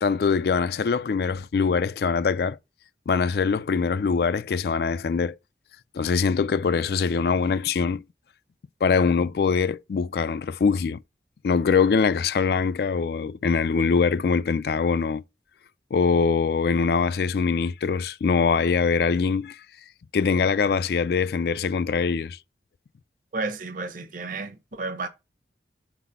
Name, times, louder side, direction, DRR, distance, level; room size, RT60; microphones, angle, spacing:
voice 1, 0.0-2.6 3.1-5.4 5.9-8.0 8.8-11.0 11.4-15.2 15.9-19.6 20.1-22.4, left 5 dB, 60° left, 0.3 m, -23 dB
voice 2, 23.3-25.1, right 3 dB, 50° right, 0.9 m, -32 dB
6.1 x 4.1 x 5.6 m
head